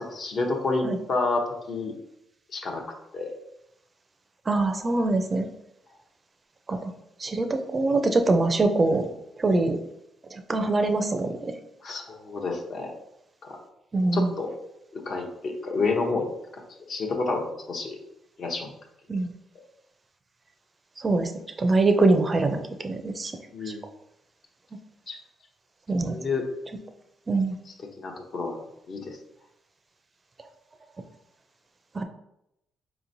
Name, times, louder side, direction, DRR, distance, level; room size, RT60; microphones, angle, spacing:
voice 1, 0.0-1.9 2.5-2.8 3.1-3.3 11.8-12.9 13.4-13.6 14.1-14.5 14.9-16.6 16.9-18.0 18.4-18.7 23.5-23.8 25.1-25.2 26.0-26.5 27.7-28.6 28.9-29.2, left 3 dB, 55° left, 1 dB, 0.8 m, -29 dB
voice 2, 4.5-5.5 6.7-6.9 7.2-9.1 9.4-9.8 10.3-11.5 13.9-14.3 19.1-19.3 21.0-21.3 21.6-23.3 25.9-26.2 27.3-27.6 31.9-32.0, right 2 dB, 30° right, 6 dB, 0.4 m, -23 dB
4.3 x 2.9 x 2.6 m, 0.83 s
cardioid pair, 90°, 0 cm